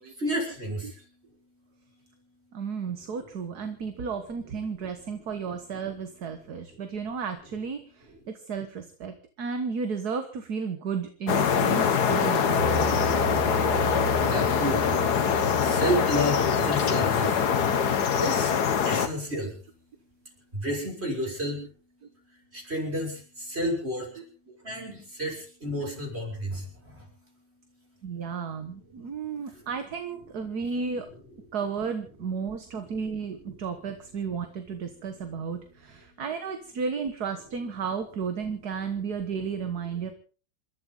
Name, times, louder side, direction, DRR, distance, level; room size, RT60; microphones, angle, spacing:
voice 1, 0.1-1.0 13.8-15.1 15.6-17.4 18.2-18.5 18.8-19.5 20.5-21.7 22.5-24.1 24.6-27.1 29.5-29.6, equal, 30° right, 0 dB, 6.4 m, -31 dB
voice 2, 2.5-12.6 16.4-16.5 21.2-21.3 22.0-22.1 24.2-24.6 28.0-31.1 31.5-40.1, right 6 dB, 50° right, 7 dB, 1.7 m, -33 dB
sound 1, 11.3-19.1, left 7 dB, 55° left, 1.6 m, -24 dB
sound 2, 12.5-19.0, right 4 dB, 90° right, 6.6 m, -35 dB
28.0 x 13.0 x 3.9 m, 0.39 s
omnidirectional pair, 2.3 m